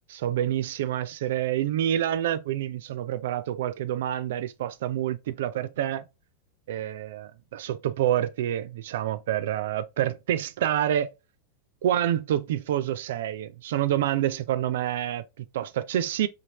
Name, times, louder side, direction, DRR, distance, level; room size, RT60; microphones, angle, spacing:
voice 1, 0.1-6.0 6.7-11.1 11.8-16.3, right 11 dB, 55° right, 0.4 m, -27 dB
4.2 x 2.8 x 2.9 m
figure-of-eight pair, 90°, 0 cm